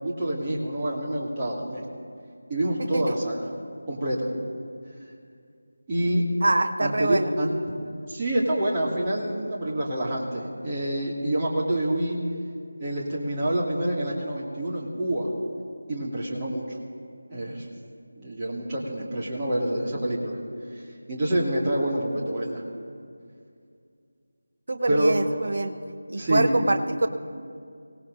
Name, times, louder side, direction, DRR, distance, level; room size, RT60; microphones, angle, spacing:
voice 1, 0.0-1.8 2.5-3.4 3.9-4.3 5.9-6.2 6.8-7.5 8.1-12.2 12.8-15.3 15.9-16.8 17.3-17.7 18.2-20.4 20.7-22.6 24.9-25.1 26.2-26.5, right 1 dB, 20° right, -6 dB, 2.2 m, -27 dB
voice 2, 2.8-3.1 6.4-7.3 24.7-25.8 26.1-27.1, right 2 dB, 55° right, 8 dB, 0.9 m, -25 dB
24.5 x 18.0 x 2.6 m, 2.3 s
figure-of-eight pair, 165°, 0 cm